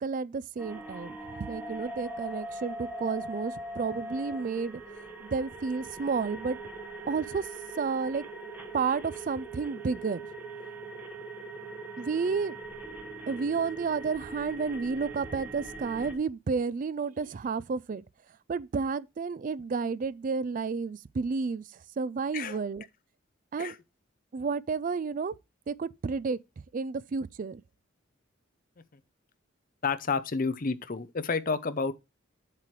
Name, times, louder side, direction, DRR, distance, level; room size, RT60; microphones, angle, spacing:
voice 1, 0.0-4.8 5.2-6.6 7.1-7.5 7.8-8.2 8.7-10.2 12.0-12.6 13.3-18.0 18.5-21.6 22.0-22.8 23.5-23.7 24.3-25.3 25.7-26.4 26.7-27.6, right 5 dB, 40° right, 0.3 m, -31 dB
sound 1, 0.6-16.1, right 2 dB, 10° right, 1.4 m, -41 dB
voice 2, 29.8-31.9, left 4 dB, 45° left, 0.6 m, -30 dB
7.5 x 7.5 x 3.2 m
head